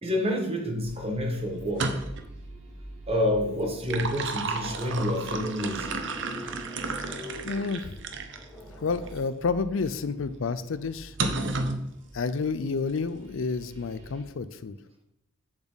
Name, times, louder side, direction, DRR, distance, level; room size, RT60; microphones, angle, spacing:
voice 1, 0.0-2.0 3.1-6.0, left 1 dB, 30° right, 1 dB, 1.5 m, -28 dB
sound 1, 0.8-14.2, right 1 dB, 80° right, 1.8 m, -48 dB
sound 2, 1.6-2.3 3.6-8.5 9.1-9.2 11.2-11.8, right 3 dB, 60° right, 0.8 m, -32 dB
sound 3, 3.8-13.4, left 1 dB, 5° left, 1.8 m, -47 dB
voice 2, 7.4-7.9 8.8-11.1 12.1-14.8, left 4 dB, 70° left, 13 dB, 0.5 m, -30 dB
8.0 x 7.2 x 4.0 m, 0.85 s
head